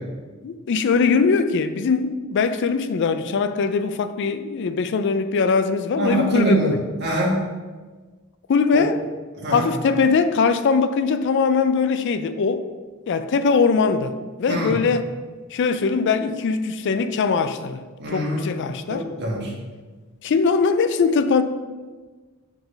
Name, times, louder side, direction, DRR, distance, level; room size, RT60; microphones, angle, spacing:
voice 1, 0.4-7.1 8.5-9.0 9.5-12.7 13.1-14.1 14.4-15.1 15.5-17.8 18.1-19.1 20.2-21.4, left 5 dB, 55° left, 0.4 m, -21 dB
voice 2, 6.0-7.3 8.7-8.8 9.4-9.6 14.5-14.8 18.0-18.4 18.9-19.5, right 1 dB, 50° right, 1.4 m, -24 dB
4.9 x 3.9 x 5.2 m
head